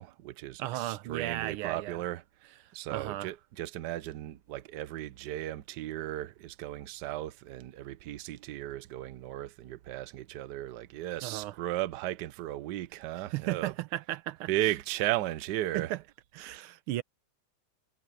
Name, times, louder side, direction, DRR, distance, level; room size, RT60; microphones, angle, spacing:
voice 1, 0.0-13.7 14.5-15.9, right 14 dB, 65° right, 1.2 m, -35 dB
voice 2, 0.6-2.0 2.9-3.3 11.2-11.5 13.3-14.5 15.7-16.0 16.4-17.0, right 15 dB, 85° right, 1.5 m, -35 dB
omnidirectional pair, 2.3 m